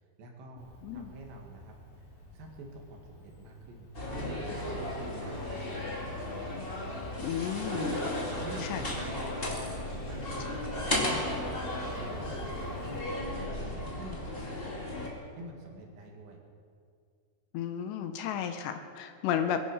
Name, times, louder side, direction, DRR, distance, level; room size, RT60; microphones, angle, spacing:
voice 1, 0.2-0.7 0.9-2.1 2.3-5.9 7.7-11.2 11.6-13.5 13.8-15.1 15.3-16.4, right 1 dB, 70° right, 0 dB, 4.1 m, -47 dB
Cricket, 0.6-13.0, left 2 dB, 50° left, 5.2 m, -53 dB
voice 2, 0.8-1.1 7.2-7.9 8.6-8.8 17.5-19.6, left 9 dB, 75° left, 7 dB, 2.8 m, -33 dB
sound 1, 3.9-15.1, left 1 dB, 35° left, 0.9 m, -35 dB
21.5 x 11.0 x 5.6 m, 2.2 s
omnidirectional pair, 5.3 m